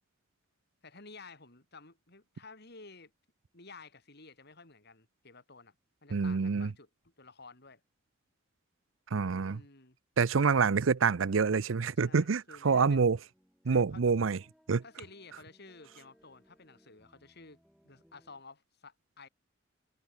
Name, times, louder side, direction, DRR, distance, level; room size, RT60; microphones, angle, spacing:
voice 1, 0.8-3.1 3.5-5.8 6.0-7.8 9.4-10.0 10.4-10.6 12.0-13.0 13.6-14.0 14.8-19.3, left 3 dB, 55° left, 5.6 m, -53 dB
voice 2, 6.1-6.7 9.1-9.6 10.2-13.2 13.7-14.4 14.7-14.8, right 5 dB, 80° right, 0.6 m, -27 dB
sound 1, 13.1-18.4, equal, ahead, 5.4 m, -67 dB
head